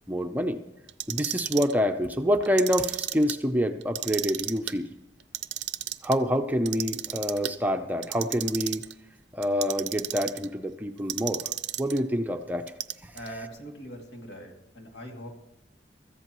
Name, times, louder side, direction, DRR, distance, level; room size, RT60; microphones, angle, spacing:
voice 1, 0.1-0.6 1.1-4.9 6.0-8.8 9.3-11.5 11.8-12.7 13.0-13.1, equal, 10° right, 6 dB, 0.6 m, -27 dB
Clock, 0.9-1.7 2.4-3.3 3.8-4.7 5.2-6.1 6.7-7.5 8.0-8.9 9.4-10.5 11.1-12.0 12.7-13.3, right 13 dB, 65° right, 0.5 m, -33 dB
voice 2, 13.1-15.3, equal, 70° left, 2 dB, 2.6 m, -41 dB
23.5 x 14.5 x 3.1 m, 0.89 s
head